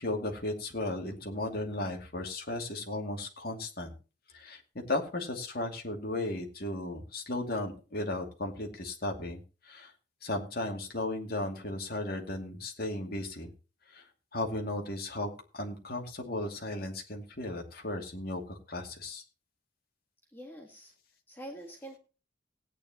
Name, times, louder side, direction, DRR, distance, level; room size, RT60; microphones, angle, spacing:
voice 1, 0.0-3.9 4.3-4.6 4.9-9.9 10.2-13.5 13.9-14.0 14.3-19.2, left 2 dB, 45° left, 2 dB, 2.4 m, -35 dB
voice 2, 20.3-20.9 21.3-22.0, right 1 dB, 10° left, 0 dB, 1.7 m, -45 dB
17.5 x 9.6 x 2.9 m, 0.33 s
head